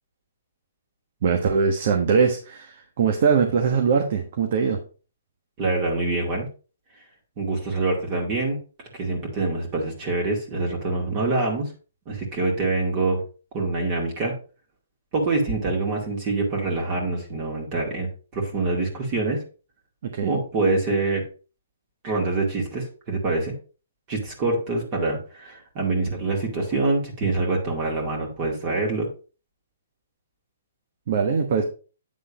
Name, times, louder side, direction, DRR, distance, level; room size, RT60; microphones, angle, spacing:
voice 1, 1.2-4.8 20.0-20.4 31.1-31.6, right 5 dB, 50° right, 4 dB, 1.2 m, -22 dB
voice 2, 5.6-6.5 7.4-8.6 8.9-11.7 12.1-13.2 13.5-14.3 15.1-19.4 20.2-21.2 22.0-23.5 24.1-29.1, right 3 dB, 30° right, -1 dB, 2.1 m, -25 dB
8.7 x 3.7 x 4.9 m, 0.36 s
hypercardioid pair, 150°, 0 cm